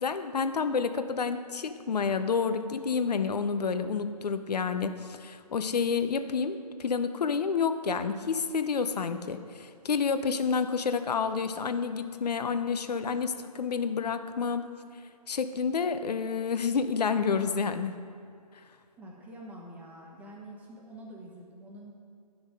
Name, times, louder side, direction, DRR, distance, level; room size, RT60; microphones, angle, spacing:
voice 1, 0.0-14.6 15.3-18.0, left 5 dB, 75° left, 10 dB, 0.7 m, -29 dB
voice 2, 19.0-21.9, right 1 dB, 5° right, -2 dB, 1.1 m, -46 dB
10.5 x 6.1 x 5.1 m, 2.4 s
hypercardioid pair, 150°, 21 cm